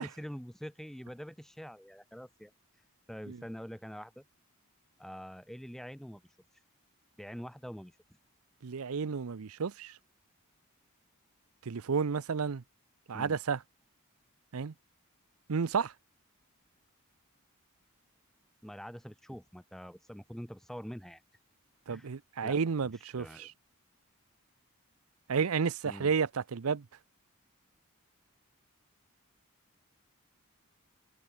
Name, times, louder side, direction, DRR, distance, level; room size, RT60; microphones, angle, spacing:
voice 1, 0.0-4.2 5.0-6.6 7.2-8.0 13.1-13.4 18.6-21.2 21.9-22.1 22.4-22.6 22.8-23.5 25.8-26.1, equal, ahead, 3.2 m, -45 dB
voice 2, 8.6-9.9 11.7-12.6 13.1-13.6 14.5-14.7 15.5-15.9 21.9-23.5 25.3-26.8, right 5 dB, 80° right, 0.6 m, -31 dB
head